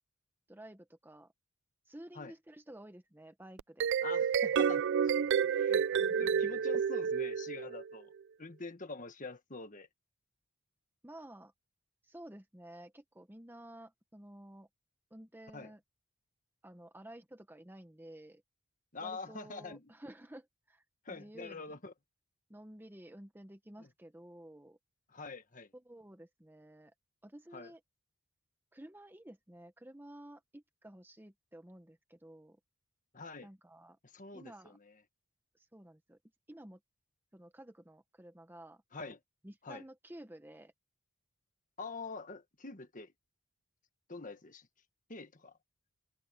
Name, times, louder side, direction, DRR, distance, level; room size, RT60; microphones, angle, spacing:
voice 1, 0.5-1.3 1.9-3.9 6.0-6.7 11.0-11.5 12.0-14.7 15.1-15.8 16.6-18.4 19.0-21.7 22.5-24.8 25.7-26.9 27.2-27.8 28.7-32.6 33.4-34.0 34.3-34.8 35.5-36.2 36.5-36.8 37.3-38.8 39.4-40.7, right 1 dB, 10° right, 0.9 m, -52 dB
sound 1, 3.6-7.9, right 7 dB, 55° right, 0.3 m, -30 dB
voice 2, 4.0-8.1 8.4-9.9 15.5-15.7 18.9-19.9 21.0-21.9 25.1-25.7 27.5-27.7 33.1-33.5 34.1-34.9 38.9-39.2 39.6-39.8 41.8-43.1 44.1-44.7 45.1-45.5, left 3 dB, 35° left, 1.5 m, -45 dB
head